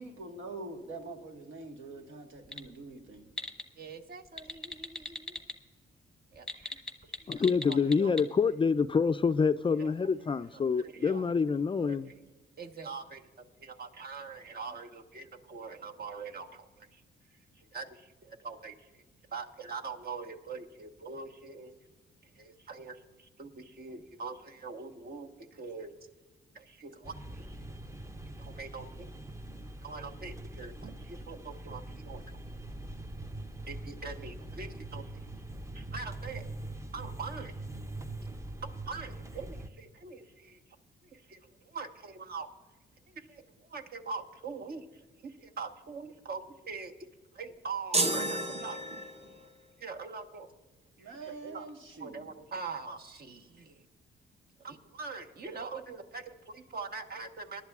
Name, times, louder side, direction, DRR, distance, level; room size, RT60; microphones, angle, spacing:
voice 1, 0.0-3.3 51.0-52.3, right 3 dB, 85° right, 1.5 m, -44 dB
sound 1, 2.4-2.7 3.1-3.6 4.2-5.5 6.3-8.2, left 1 dB, 5° left, 0.9 m, -37 dB
voice 2, 3.8-5.4 6.3-6.8 7.1-8.3 9.8-9.9 10.5-11.5 11.8-12.1 12.6-13.2 13.6-17.0 17.6-17.9 18.3-19.0 19.3-21.7 22.2-25.9 26.5-27.6 28.4-29.1 29.8-32.4 33.7-35.2 35.7-36.5 36.9-37.6 38.6-40.6 41.0-42.5 43.1-46.9 47.3-49.0 49.8-50.5 51.0-51.7 52.0-53.8 54.6-57.6, right 4 dB, 55° right, 1.2 m, -43 dB
voice 3, 7.3-12.1, left 5 dB, 25° left, 0.3 m, -27 dB
sound 2, 27.0-39.7, right 2 dB, 15° right, 0.6 m, -43 dB
sound 3, 47.9-49.5, right 2 dB, 35° right, 1.0 m, -31 dB
23.0 x 11.5 x 2.4 m
cardioid pair, 80°, 19 cm